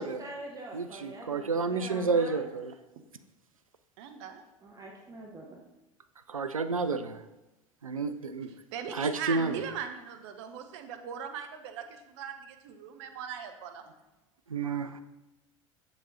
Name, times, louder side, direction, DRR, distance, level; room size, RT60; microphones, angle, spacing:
voice 1, 0.0-2.4 4.6-5.6, right 1 dB, 20° right, 0 dB, 1.0 m, -44 dB
voice 2, 0.7-2.7 6.3-7.2 7.8-8.6 8.9-9.6 14.5-15.0, right 4 dB, 85° right, 11 dB, 0.4 m, -30 dB
voice 3, 4.0-4.4 8.7-13.8, right 8 dB, 55° right, 7 dB, 0.8 m, -39 dB
7.3 x 6.9 x 2.7 m, 0.98 s
figure-of-eight pair, 75°, 17 cm